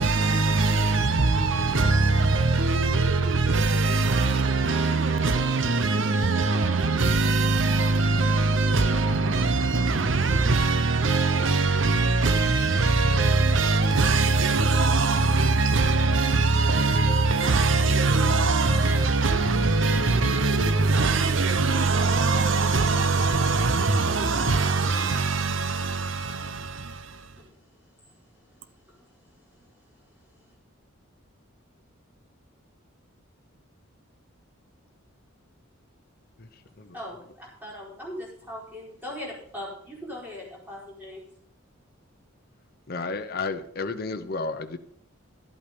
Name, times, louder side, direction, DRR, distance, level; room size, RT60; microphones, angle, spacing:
voice 1, 0.0-27.4, right 3 dB, 65° right, 0.8 m, -22 dB
voice 2, 36.9-41.2, left 1 dB, 10° right, 4.7 m, -39 dB
voice 3, 42.9-44.8, left 3 dB, 45° left, 0.8 m, -32 dB
12.5 x 8.6 x 5.2 m
head